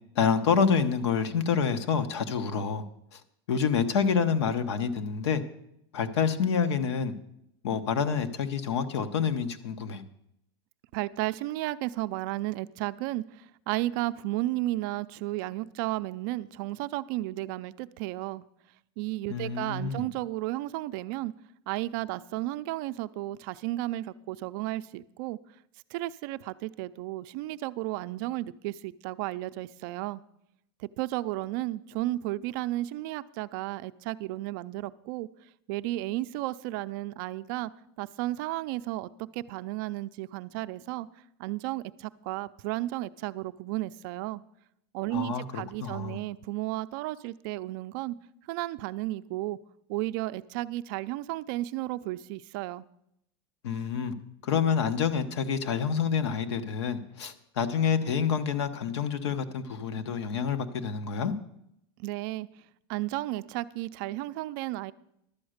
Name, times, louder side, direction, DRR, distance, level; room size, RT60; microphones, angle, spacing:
voice 1, 0.1-2.8 3.1-3.2 3.5-5.4 5.9-7.1 7.6-10.0 19.3-20.1 45.1-46.2 53.6-54.1 54.4-61.3, left 6 dB, 80° left, 9 dB, 1.2 m, -27 dB
voice 2, 10.9-18.4 19.0-21.3 21.7-25.4 25.9-30.2 30.8-35.3 35.7-37.7 38.0-41.1 41.4-44.4 44.9-48.2 48.5-49.6 49.9-52.8 62.0-62.5 62.9-64.9, right 17 dB, 50° right, 14 dB, 0.4 m, -33 dB
11.5 x 7.8 x 6.5 m, 0.77 s
supercardioid pair, 155°, 14 cm